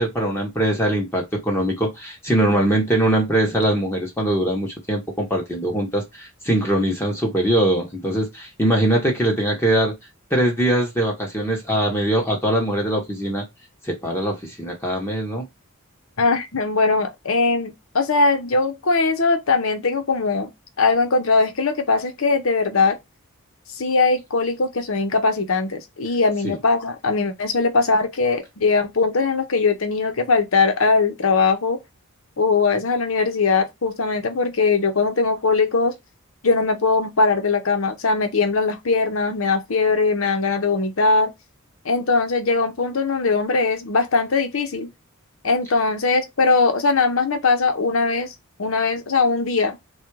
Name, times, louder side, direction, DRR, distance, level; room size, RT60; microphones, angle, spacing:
voice 1, 0.0-9.9 10.3-13.4 13.8-15.5 26.4-26.6, right 1 dB, 10° left, 0.9 m, -22 dB
voice 2, 16.2-20.5 20.8-23.0 23.7-31.8 32.4-35.9 36.4-41.3 41.8-44.9 45.4-48.3 48.6-49.8, left 4 dB, 65° left, 0.8 m, -20 dB
3.7 x 2.4 x 4.5 m
head